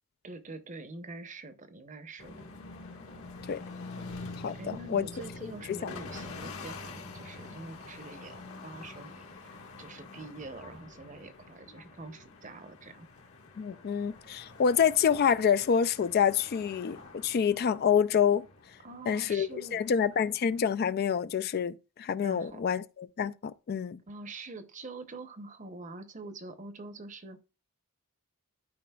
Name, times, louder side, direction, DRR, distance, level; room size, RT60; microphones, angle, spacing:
voice 1, 0.2-2.5 4.5-13.1 18.8-19.9 22.2-22.7 24.1-27.4, right 2 dB, 35° right, 0.8 m, -45 dB
sound 1, 2.2-20.8, left 3 dB, 75° left, 1.6 m, -46 dB
voice 2, 4.4-5.1 5.7-5.9 13.6-18.4 19.1-24.0, left 7 dB, 45° left, 0.3 m, -27 dB
12.5 x 5.0 x 2.3 m
head